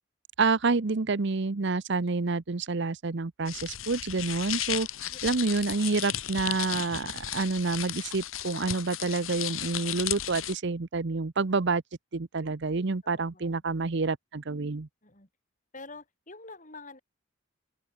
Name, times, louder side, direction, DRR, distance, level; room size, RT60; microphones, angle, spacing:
voice 1, 0.4-11.8 12.1-14.9, right 3 dB, 55° right, 0.7 m, -28 dB
sound 1, 3.5-10.6, left 12 dB, 75° left, 1.3 m, -35 dB
voice 2, 5.1-5.5 13.0-13.6 15.0-15.3 15.7-17.0, left 3 dB, 35° left, 6.8 m, -47 dB
open air
head